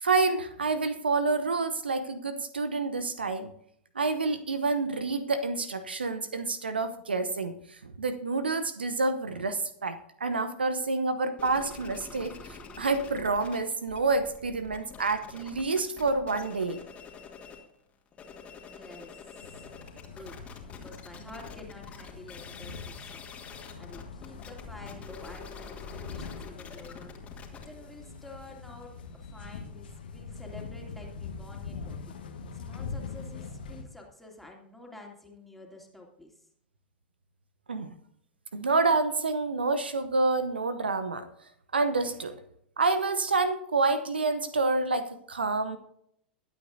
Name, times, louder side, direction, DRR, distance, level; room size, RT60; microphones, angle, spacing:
voice 1, 0.0-3.5 3.9-16.8 37.7-37.9 38.5-41.3 41.7-42.4 42.8-45.8, right 3 dB, 75° right, 12 dB, 0.8 m, -28 dB
sound 1, 11.4-13.6 13.8-17.7 18.1-29.6, left 5 dB, 25° left, 2.2 m, -47 dB
voice 2, 18.6-19.6 20.0-20.4 20.7-23.2 23.5-32.1 32.6-36.5, left 2 dB, ahead, -1 dB, 2.9 m, -49 dB
sound 2, 19.4-33.8, left 5 dB, 65° left, 1.5 m, -43 dB
22.0 x 8.6 x 2.7 m, 0.72 s
figure-of-eight pair, 95°, 6 cm